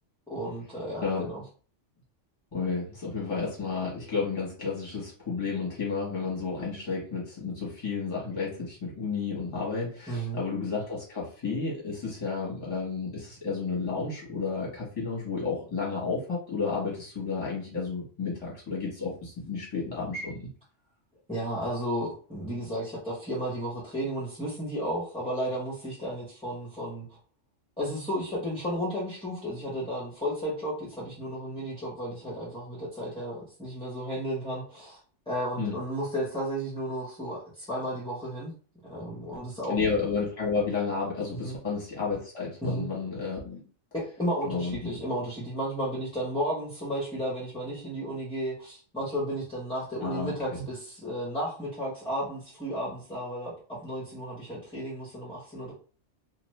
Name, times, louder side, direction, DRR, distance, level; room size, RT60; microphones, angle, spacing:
voice 1, 0.3-1.4 10.1-10.4 21.3-27.1 27.8-35.0 35.3-38.5 38.9-39.8 41.3-41.6 42.6-42.9 43.9-55.7, equal, 5° left, -7 dB, 0.9 m, -33 dB
voice 2, 2.5-20.5 35.6-35.7 39.7-43.6 44.5-45.0 50.0-50.6, left 4 dB, 30° left, -5 dB, 1.1 m, -32 dB
2.5 x 2.4 x 3.1 m, 0.40 s
omnidirectional pair, 1.2 m